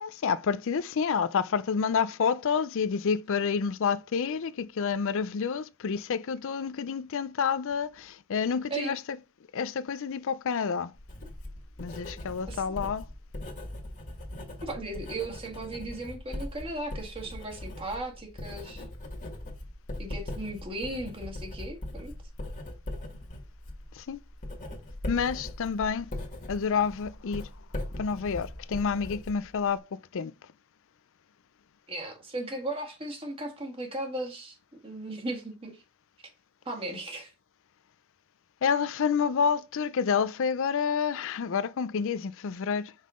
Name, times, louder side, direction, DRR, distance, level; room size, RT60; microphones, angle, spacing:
voice 1, 0.0-9.0 9.5-10.9 11.8-13.1 23.9-24.2 25.1-26.1 26.5-27.5 28.0-30.3 38.6-42.9, left 6 dB, 60° left, 0.4 m, -29 dB
Writing, 10.9-29.8, left 1 dB, 35° left, 1.8 m, -40 dB
voice 2, 14.6-18.8 20.0-22.1 31.9-34.6 34.8-35.8 36.7-37.3, right 2 dB, 25° right, 1.7 m, -36 dB
5.6 x 5.6 x 3.7 m
head